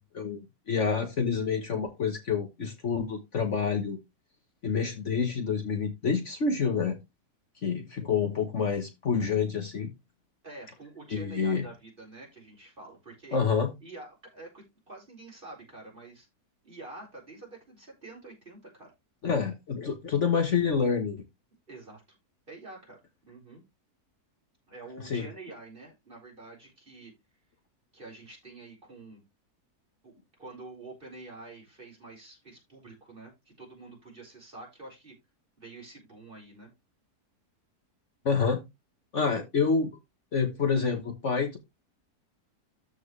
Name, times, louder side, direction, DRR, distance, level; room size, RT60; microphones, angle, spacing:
voice 1, 0.1-4.0 4.6-7.0 7.6-9.9 11.1-11.7 13.3-13.7 19.2-21.2 25.0-25.3 38.2-38.6 39.1-39.9 40.3-41.6, left 5 dB, 50° left, 5 dB, 1.4 m, -28 dB
voice 2, 10.4-13.4 13.8-16.3 16.6-18.9 21.7-22.2 22.5-23.0 23.3-23.6 24.7-27.1 27.9-29.2 30.0-30.1 30.4-35.1 35.6-36.7, right 3 dB, 35° right, -2 dB, 5.0 m, -47 dB
13.5 x 4.6 x 3.2 m, 0.22 s
omnidirectional pair, 1.7 m